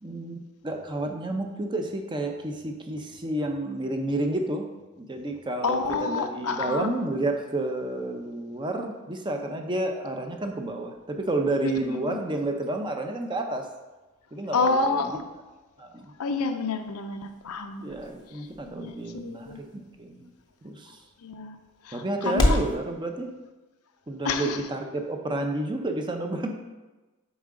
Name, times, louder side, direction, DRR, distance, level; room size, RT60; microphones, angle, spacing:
voice 1, 0.0-4.7 5.0-13.7 14.3-15.2 15.8-16.1 17.8-20.3 20.6-21.0 21.9-23.3 24.1-26.5, right 2 dB, 20° right, 4 dB, 0.6 m, -30 dB
voice 2, 5.6-6.9 11.6-12.2 14.5-15.3 16.2-17.8 18.8-19.6 21.2-21.6 21.8-22.6 24.2-24.6, left 4 dB, 85° left, 7 dB, 0.6 m, -29 dB
sound 1, 16.5-22.8, left 1 dB, 20° left, 0.6 m, -33 dB
7.2 x 4.8 x 3.7 m, 1.2 s
head